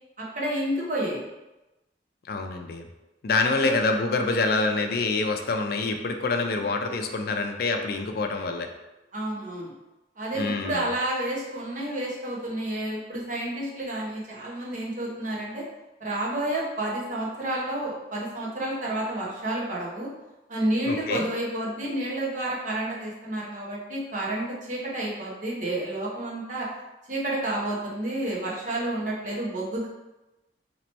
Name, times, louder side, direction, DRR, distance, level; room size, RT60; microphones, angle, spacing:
voice 1, 0.2-1.3 3.4-3.8 9.1-9.7 10.2-15.6 16.0-20.1 20.5-26.7 27.1-29.9, right 1 dB, 45° right, -4 dB, 1.0 m, -30 dB
voice 2, 2.3-2.8 3.2-8.7 10.4-10.8 20.9-21.3, left 3 dB, 60° left, 5 dB, 0.4 m, -26 dB
3.0 x 2.9 x 4.2 m, 1.0 s
head